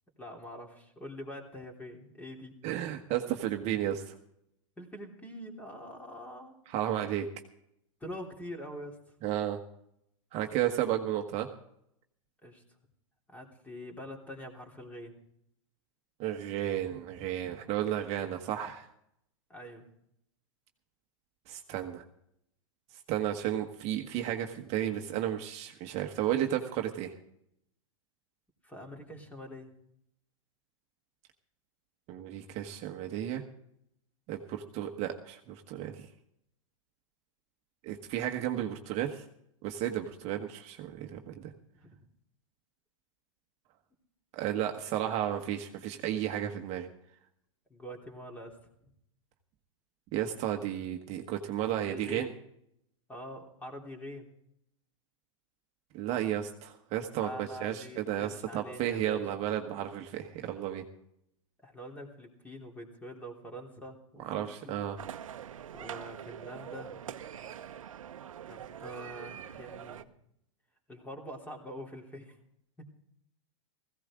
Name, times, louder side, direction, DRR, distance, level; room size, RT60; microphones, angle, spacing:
voice 1, 0.2-2.5 4.8-6.5 8.0-9.0 12.4-12.6 13.3-15.2 19.5-19.8 28.6-29.7 41.8-41.9 47.7-48.6 51.9-52.3 53.1-54.3 57.2-59.2 61.6-64.8 65.7-67.0 68.5-70.0 70.9-72.4, equal, 10° left, 2 dB, 3.2 m, -44 dB
voice 2, 2.6-4.1 6.7-7.3 9.2-9.6 10.3-11.5 16.2-18.9 21.5-22.0 23.1-27.1 32.1-33.4 34.3-36.1 37.8-39.2 39.6-41.5 44.3-46.9 50.1-52.3 55.9-60.8 64.2-65.0, right 11 dB, 40° right, 4 dB, 1.3 m, -33 dB
sound 1, 65.0-70.0, right 9 dB, 85° right, 1.0 m, -44 dB
17.0 x 16.0 x 3.7 m, 0.74 s
hypercardioid pair, 120°, 17 cm